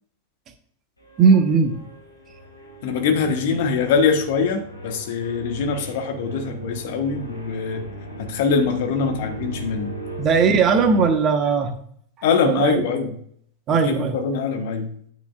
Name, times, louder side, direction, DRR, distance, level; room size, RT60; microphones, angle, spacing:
sound 1, 1.0-11.1, right 1 dB, 85° left, 2.1 m, -37 dB
voice 1, 1.2-1.8 10.2-11.7 12.4-12.7 13.7-14.2, right 5 dB, 30° right, 7 dB, 1.2 m, -18 dB
voice 2, 2.8-7.8 8.2-9.9 12.2-13.1 13.7-14.9, left 5 dB, 50° left, 5 dB, 1.3 m, -23 dB
9.3 x 8.2 x 2.5 m, 0.63 s
figure-of-eight pair, 90°, 0 cm